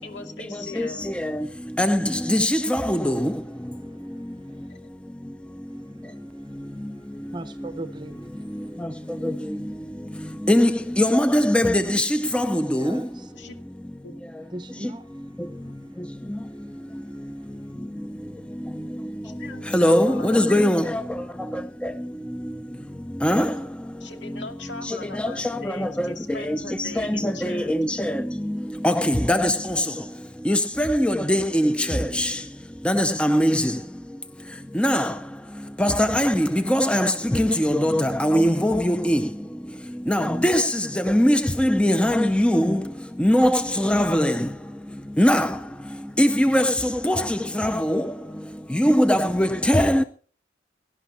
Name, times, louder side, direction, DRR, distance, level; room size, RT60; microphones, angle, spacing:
voice 1, 0.0-1.1 4.7-4.8 13.3-13.5 14.0-14.1 19.2-20.9 24.0-27.7, left 3 dB, 70° left, 2.4 m, -40 dB
voice 2, 2.3-3.3 10.5-12.1 12.3-12.8 19.7-20.8 23.2-23.5 26.0-26.1 27.0-28.1 28.8-29.5 30.5-32.3 32.9-33.7 34.8-35.1 35.8-39.2 40.1-40.6 41.1-42.8 43.2-44.3 45.2-45.5 46.2-46.7 47.0-47.2 47.6-48.0 48.8-50.0, equal, 5° left, 0.5 m, -20 dB
voice 3, 7.3-8.3 12.6-13.3 14.5-15.1 15.4-15.5, right 2 dB, 25° right, 0.8 m, -37 dB
17.5 x 11.5 x 4.3 m
head